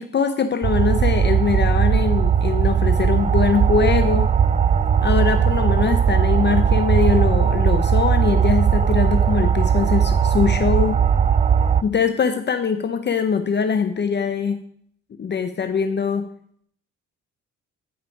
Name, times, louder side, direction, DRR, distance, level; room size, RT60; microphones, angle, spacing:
voice 1, 0.0-4.3 5.0-11.0 11.8-14.6 15.2-16.3, left 6 dB, 35° left, 8 dB, 0.6 m, -22 dB
sound 1, 0.6-11.8, right 7 dB, 25° right, 0.3 m, -18 dB
9.1 x 5.5 x 5.1 m, 0.63 s
cardioid pair, 90°, 30 cm